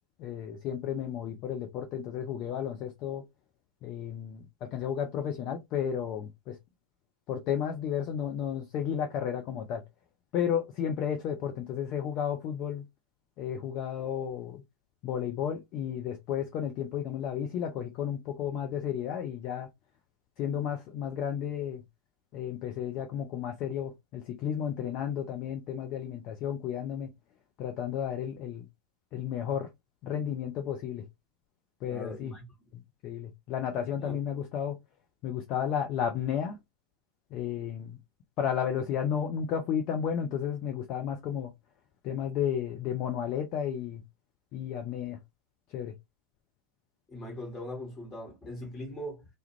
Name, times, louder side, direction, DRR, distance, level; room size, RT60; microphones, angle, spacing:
voice 1, 0.2-3.2 3.8-6.6 7.3-9.8 10.3-12.8 13.4-14.6 15.0-19.7 20.4-21.8 22.3-27.1 27.6-28.7 29.1-29.7 30.0-31.1 31.8-32.3 32.7-34.8 35.2-36.6 37.3-38.0 38.4-41.5 42.0-44.0 44.5-45.2 45.7-46.0, left 8 dB, 40° left, 0.4 m, -33 dB
voice 2, 31.8-32.5 34.0-34.2 47.1-49.3, left 1 dB, 20° left, 1.2 m, -40 dB
2.3 x 2.1 x 2.9 m
figure-of-eight pair, 90°, 0 cm